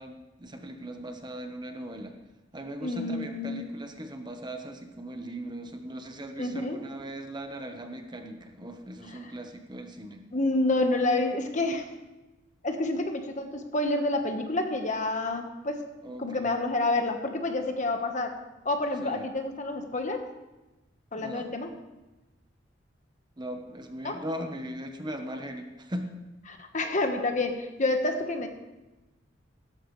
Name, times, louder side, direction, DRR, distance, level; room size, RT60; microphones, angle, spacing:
voice 1, 0.0-2.1 2.5-10.2 16.0-16.5 19.0-19.2 21.2-21.5 23.4-26.1, right 1 dB, 25° right, 5 dB, 1.1 m, -39 dB
voice 2, 2.8-3.8 6.4-6.8 9.1-9.3 10.3-11.9 12.6-15.8 16.2-18.4 18.6-20.3 21.1-21.7 24.0-24.2 26.5-28.5, left 2 dB, 40° left, 5 dB, 1.3 m, -28 dB
16.0 x 13.5 x 3.2 m, 1.1 s
head